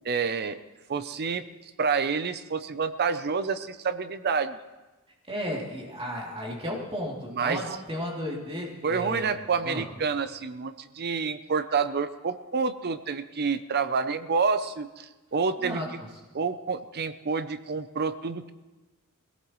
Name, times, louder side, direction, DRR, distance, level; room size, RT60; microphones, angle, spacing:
voice 1, 0.0-0.6 0.9-1.5 1.8-4.6 7.3-7.8 8.8-16.0 16.3-18.5, right 5 dB, 45° right, 12 dB, 0.6 m, -28 dB
voice 2, 5.3-9.3 9.6-9.9 15.6-15.9, equal, 25° right, -3 dB, 2.8 m, -34 dB
23.0 x 17.0 x 3.1 m, 1.1 s
head